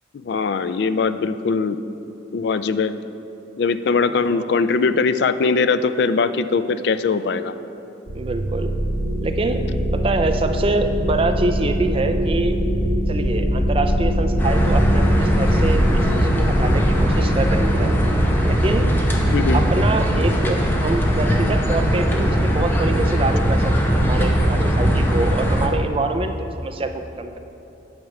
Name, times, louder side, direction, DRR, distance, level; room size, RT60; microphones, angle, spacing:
voice 1, 0.2-1.8 2.3-2.9 3.6-7.5 19.3-19.6, left 4 dB, 60° left, 12 dB, 0.3 m, -21 dB
voice 2, 8.1-8.7 9.2-9.6 9.9-12.6 13.1-17.9 18.5-18.9 19.5-27.4, right 2 dB, 30° right, 7 dB, 0.4 m, -25 dB
sound 1, 8.1-20.3, equal, 90° right, 1.2 m, -23 dB
sound 2, 14.4-25.7, equal, 10° left, 0.7 m, -19 dB
9.6 x 6.5 x 4.8 m, 2.9 s
head